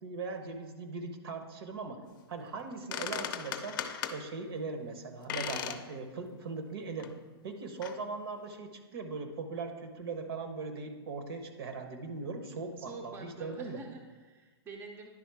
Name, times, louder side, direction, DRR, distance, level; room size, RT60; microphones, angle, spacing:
voice 1, 0.0-2.0 2.3-3.8 4.1-7.1 7.4-13.8, right 4 dB, 65° right, 7 dB, 1.0 m, -39 dB
sound 1, 2.6-2.7 2.9-4.2 5.3-5.8 6.2-6.3 7.0-7.1 7.8-8.0, left 9 dB, 50° left, 0.5 m, -37 dB
voice 2, 12.8-15.1, right 3 dB, 15° right, 2 dB, 0.6 m, -47 dB
10.0 x 3.7 x 4.7 m, 1.3 s
hypercardioid pair, 145°, 14 cm